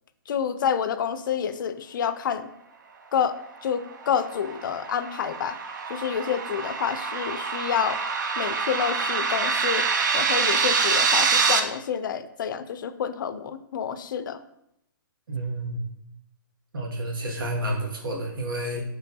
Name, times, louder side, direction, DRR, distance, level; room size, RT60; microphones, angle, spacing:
voice 1, 0.3-2.5 3.1-3.4 3.6-5.6 5.9-8.0 8.4-9.9 10.1-14.4, left 8 dB, 65° left, 11 dB, 0.4 m, -28 dB
sound 1, 3.9-11.6, right 5 dB, 60° right, 0.5 m, -25 dB
voice 2, 15.3-15.8 16.7-18.8, right 1 dB, 75° right, 1 dB, 1.0 m, -30 dB
4.4 x 3.1 x 2.7 m, 0.80 s
hypercardioid pair, 145°, 11 cm